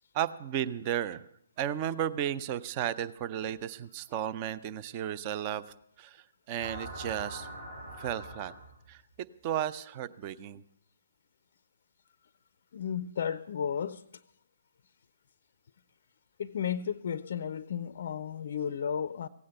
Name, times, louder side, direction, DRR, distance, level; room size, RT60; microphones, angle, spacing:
voice 1, 0.1-1.2 1.6-5.6 6.0-7.5 8.0-8.5 8.9-9.0 9.4-10.6, right 10 dB, 30° right, 0.6 m, -34 dB
sound 1, 6.6-9.0, right 1 dB, 80° right, 7.3 m, -43 dB
voice 2, 12.7-14.0 16.4-19.3, left 8 dB, 50° left, 0.5 m, -33 dB
16.5 x 8.6 x 7.9 m
figure-of-eight pair, 135°, 0 cm